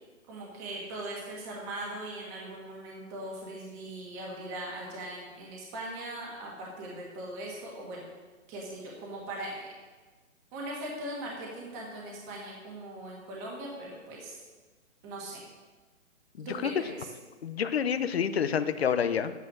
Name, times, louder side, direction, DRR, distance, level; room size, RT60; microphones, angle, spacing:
voice 1, 0.3-8.1 8.5-9.7 10.5-14.4 15.0-15.4 16.4-17.1, right 1 dB, 15° right, -3 dB, 1.5 m, -40 dB
voice 2, 16.4-16.7 17.4-19.3, left 7 dB, 50° left, 11 dB, 0.8 m, -28 dB
10.5 x 9.3 x 6.2 m, 1.3 s
hypercardioid pair, 170°, 41 cm